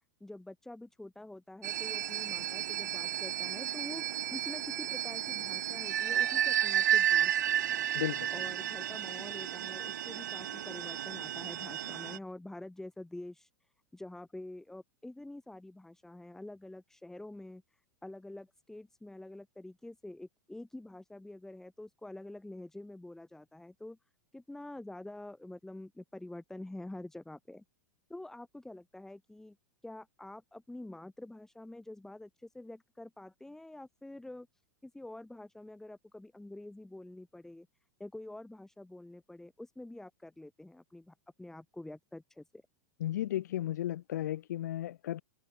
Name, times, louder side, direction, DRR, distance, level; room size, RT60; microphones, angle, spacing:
voice 1, 0.2-4.0 4.3-7.8 8.3-24.0 24.3-27.6 28.1-29.6 29.8-34.5 34.8-37.7 38.0-42.7, left 1 dB, 5° left, 3.0 m, -47 dB
sound 1, 1.6-12.2, right 11 dB, 80° right, 0.8 m, -32 dB
voice 2, 7.9-8.3 43.0-45.2, left 13 dB, 80° left, 0.4 m, -34 dB
hypercardioid pair, 115°, 9 cm